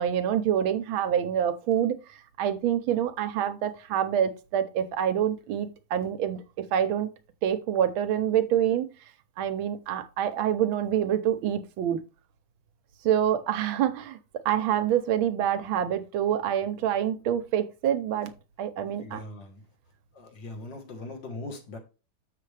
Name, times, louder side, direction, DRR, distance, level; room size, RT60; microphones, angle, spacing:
voice 1, 0.0-2.0 2.4-7.1 7.4-8.9 9.4-12.0 13.0-14.2 14.4-18.3 18.6-19.2, right 10 dB, 80° right, 1.5 m, -26 dB
voice 2, 18.9-19.6 20.1-21.8, left 2 dB, 60° left, 2.0 m, -40 dB
7.0 x 6.8 x 3.2 m
omnidirectional pair, 2.3 m